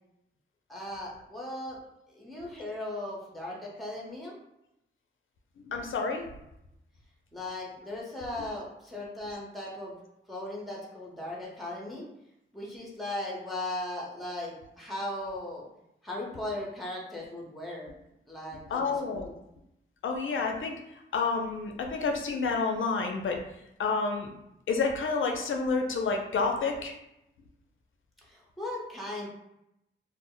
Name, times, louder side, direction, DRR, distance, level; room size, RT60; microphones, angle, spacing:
voice 1, 0.7-1.8 2.1-4.4 7.3-10.0 10.3-12.0 12.5-15.7 16.0-17.9 18.3-19.4 28.3-29.3, left 1 dB, ahead, -4 dB, 0.7 m, -37 dB
voice 2, 5.7-6.2 18.7-19.3 20.0-20.8 21.1-23.4 23.8-24.3 24.7-26.9, left 4 dB, 80° left, 3 dB, 0.4 m, -29 dB
2.1 x 2.0 x 3.7 m, 0.84 s
wide cardioid pair, 140°, 20 cm